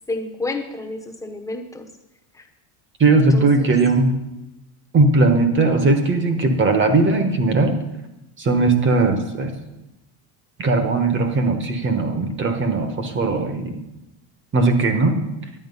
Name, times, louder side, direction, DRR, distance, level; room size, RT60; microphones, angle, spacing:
voice 1, 0.1-1.9 2.3-2.5 3.1-3.7, left 2 dB, 5° left, 2 dB, 1.0 m, -30 dB
voice 2, 3.0-4.1 4.9-7.8 8.4-9.5 10.6-13.8 14.5-15.2, right 3 dB, 25° right, 7 dB, 1.2 m, -18 dB
11.0 x 8.8 x 5.4 m, 0.95 s
cardioid pair, 160°, 46 cm